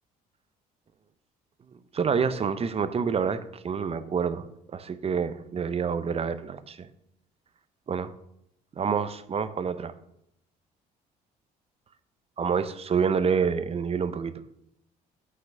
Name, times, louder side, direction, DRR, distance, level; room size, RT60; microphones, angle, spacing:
voice 1, 1.9-4.5 4.7-6.9 7.9-8.1 8.8-9.9 12.4-14.3, right 6 dB, 35° right, 13 dB, 0.6 m, -27 dB
5.9 x 5.8 x 6.6 m, 0.77 s
supercardioid pair, 80°, 17 cm